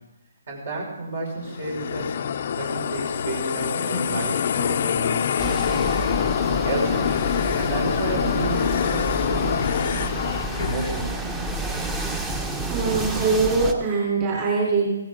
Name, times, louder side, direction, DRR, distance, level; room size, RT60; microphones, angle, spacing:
voice 1, 0.5-2.2 2.6-6.1 6.6-7.2 7.5-10.0 10.5-11.4, right 2 dB, 60° right, -1 dB, 5.6 m, -31 dB
sound 1, 1.4-11.1, left 8 dB, 50° left, 0.5 m, -25 dB
sound 2, 5.4-13.7, right 2 dB, 15° right, 1.0 m, -30 dB
voice 2, 12.7-14.9, right 4 dB, 30° right, -3 dB, 3.7 m, -22 dB
16.0 x 15.0 x 3.8 m, 0.94 s
hypercardioid pair, 145°, 0 cm